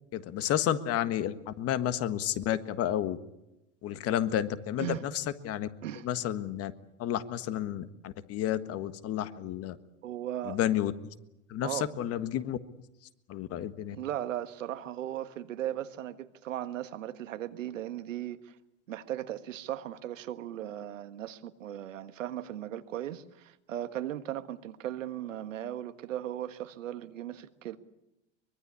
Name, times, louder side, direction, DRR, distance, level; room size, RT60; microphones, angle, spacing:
voice 1, 0.1-3.2 3.8-5.7 6.0-6.7 7.0-9.8 10.4-10.9 11.5-12.6 13.3-14.0, left 11 dB, 40° left, 12 dB, 1.5 m, -31 dB
voice 2, 10.0-10.6 11.6-11.9 13.9-18.5 18.9-27.8, right 12 dB, 85° right, 10 dB, 1.7 m, -37 dB
24.0 x 21.5 x 8.5 m, 0.90 s
hypercardioid pair, 110°, 37 cm